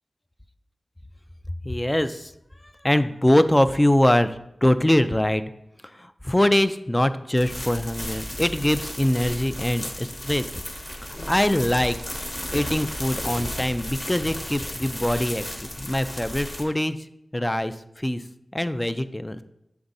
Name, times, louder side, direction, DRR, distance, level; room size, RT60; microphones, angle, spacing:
voice 1, 1.6-2.3 2.8-5.4 6.0-10.4 11.1-12.0 12.5-15.4 15.8-17.0 17.3-18.2 18.5-19.4, left 1 dB, 15° left, 12 dB, 0.4 m, -23 dB
sound 1, 7.4-16.6, left 1 dB, 35° left, 1.2 m, -34 dB
7.6 x 3.5 x 4.0 m, 0.81 s
wide cardioid pair, 70°, 0 cm